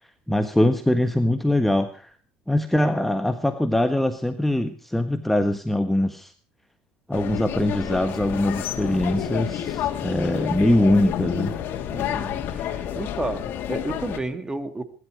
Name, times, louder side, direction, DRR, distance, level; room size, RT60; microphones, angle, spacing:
voice 1, 0.3-2.1 2.5-6.3 7.1-11.5, left 1 dB, 5° left, 1.4 m, -22 dB
sound 1, 7.1-14.2, left 10 dB, 60° left, 2.8 m, -29 dB
voice 2, 11.9-14.8, right 2 dB, 15° right, 2.8 m, -32 dB
22.0 x 11.5 x 5.2 m
supercardioid pair, 90°, 4 cm